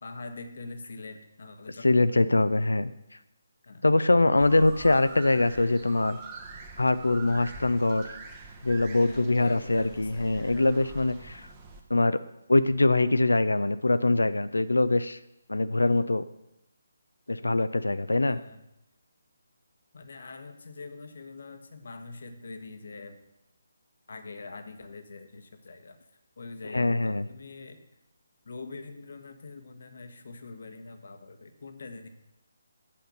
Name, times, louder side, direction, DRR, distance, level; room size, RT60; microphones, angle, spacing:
voice 1, 0.0-2.2 3.7-3.9 9.1-10.8 18.2-18.6 19.9-23.2 24.1-26.0 26.4-27.8 28.4-32.1, left 3 dB, 60° left, 7 dB, 1.1 m, -44 dB
voice 2, 1.8-2.9 3.8-6.2 6.8-8.1 8.6-11.5 11.9-12.2 12.5-15.2 15.5-16.2 17.3-18.4 26.7-27.2, left 2 dB, 80° left, 13 dB, 0.4 m, -23 dB
sound 1, 4.4-11.8, right 4 dB, 25° right, 1.1 m, -45 dB
8.5 x 5.1 x 6.7 m, 0.86 s
figure-of-eight pair, 145°, 0 cm